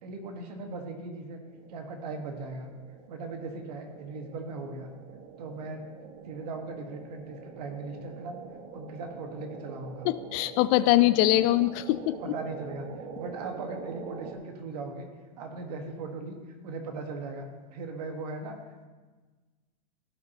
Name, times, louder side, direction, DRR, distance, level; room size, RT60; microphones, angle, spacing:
voice 1, 0.0-1.4 1.7-2.7 3.1-4.9 5.4-5.8 6.2-8.4 8.7-10.1 12.2-15.1 15.4-16.4 16.6-17.5 17.7-18.6, right 3 dB, 75° right, 4 dB, 1.5 m, -38 dB
sound 1, 1.5-14.4, right 5 dB, 45° right, 1.2 m, -45 dB
voice 2, 10.0-12.2, left 16 dB, 45° left, 14 dB, 0.4 m, -23 dB
15.0 x 5.7 x 2.9 m, 1.3 s
hypercardioid pair, 120°, 21 cm